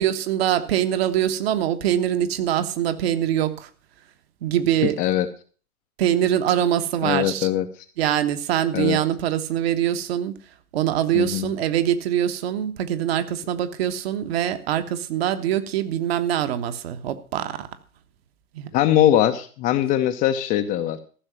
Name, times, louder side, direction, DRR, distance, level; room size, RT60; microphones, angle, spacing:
voice 1, 0.0-3.7 4.4-5.0 6.0-7.5 8.0-10.4 10.7-17.7 18.5-18.7, right 11 dB, 45° right, 9 dB, 1.3 m, -23 dB
voice 2, 7.0-7.7 8.7-9.0 11.1-11.5 18.7-21.0, left 12 dB, 20° left, 8 dB, 0.7 m, -21 dB
14.5 x 6.5 x 7.3 m, 0.40 s
figure-of-eight pair, 115°, 43 cm